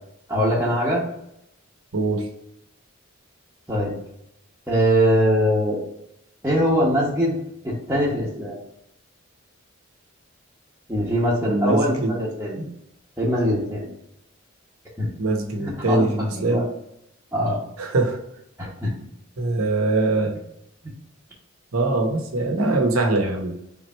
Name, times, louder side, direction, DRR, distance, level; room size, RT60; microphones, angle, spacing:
voice 1, 0.3-1.0 3.7-4.0 4.7-5.8 6.4-7.4 7.6-8.6 10.9-12.6 13.2-13.9 15.0-15.1 15.6-16.0 16.3-16.6 17.3-17.6 18.6-18.9, equal, 10° right, -9 dB, 0.9 m, -22 dB
voice 2, 1.9-2.3 11.4-12.2 12.5-12.7 15.2-16.7 17.8-18.2 19.4-20.3 21.7-23.5, right 2 dB, 90° right, 3 dB, 0.9 m, -22 dB
3.6 x 3.1 x 4.3 m, 0.80 s
head